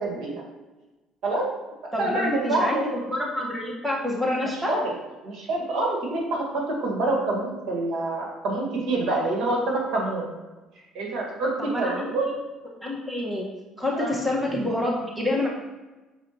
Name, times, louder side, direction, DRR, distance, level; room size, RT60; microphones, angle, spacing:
voice 1, 0.0-0.4 1.2-1.5 2.0-2.8 4.7-4.8 5.2-10.3 10.9-12.2 14.0-14.2, right 2 dB, 70° right, -1 dB, 1.9 m, -26 dB
voice 2, 1.9-2.8 3.1-4.8 11.6-12.3 12.8-13.4 13.8-15.5, left 1 dB, 5° right, -2 dB, 1.6 m, -27 dB
6.9 x 4.8 x 3.0 m, 1.2 s
supercardioid pair, 85°, 0 cm